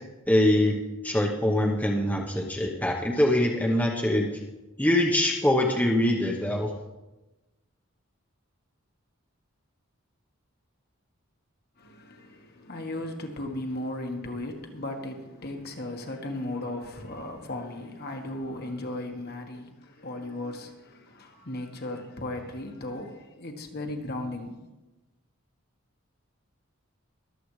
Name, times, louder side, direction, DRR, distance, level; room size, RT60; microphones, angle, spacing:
voice 1, 0.3-0.8 1.0-4.3 4.8-6.7, left 1 dB, 5° left, 0.9 m, -23 dB
voice 2, 11.8-24.5, left 1 dB, 45° left, 1.4 m, -36 dB
23.0 x 8.0 x 3.2 m
head